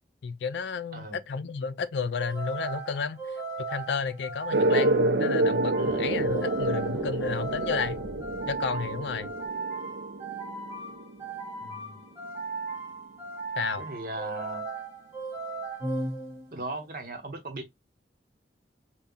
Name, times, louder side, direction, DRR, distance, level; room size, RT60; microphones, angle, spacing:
voice 1, 0.2-3.2 3.6-8.0 8.5-9.3 13.6-13.9, left 5 dB, 80° left, 0.4 m, -32 dB
sound 1, 2.2-16.7, right 3 dB, 15° right, 1.5 m, -37 dB
sound 2, 4.5-11.7, right 2 dB, 80° right, 0.6 m, -28 dB
sound 3, 5.8-9.5, left 1 dB, 25° left, 0.5 m, -44 dB
voice 2, 11.6-12.0 13.8-14.7 16.5-17.7, right 2 dB, 50° right, 1.0 m, -37 dB
5.3 x 2.3 x 2.3 m
head